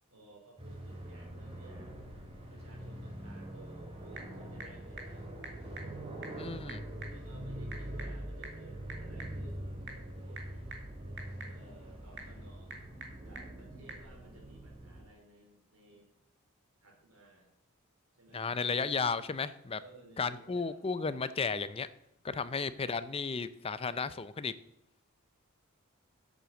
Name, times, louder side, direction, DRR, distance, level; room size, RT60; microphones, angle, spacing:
voice 1, 0.1-1.9 2.5-5.3 7.1-9.8 10.2-10.7 11.2-12.8 13.2-16.1 16.8-17.5 18.1-18.5 19.8-20.8 22.3-22.5, right 1 dB, 85° right, 0 dB, 4.0 m, -58 dB
sound 1, 0.6-15.0, right 1 dB, 25° right, 2.4 m, -44 dB
Typing / Telephone, 3.6-14.1, right 3 dB, 55° right, 2.3 m, -51 dB
voice 2, 6.4-6.8 18.3-19.8 20.2-21.9 22.2-24.5, left 5 dB, 25° left, 14 dB, 0.4 m, -34 dB
8.2 x 7.7 x 7.5 m, 0.79 s
head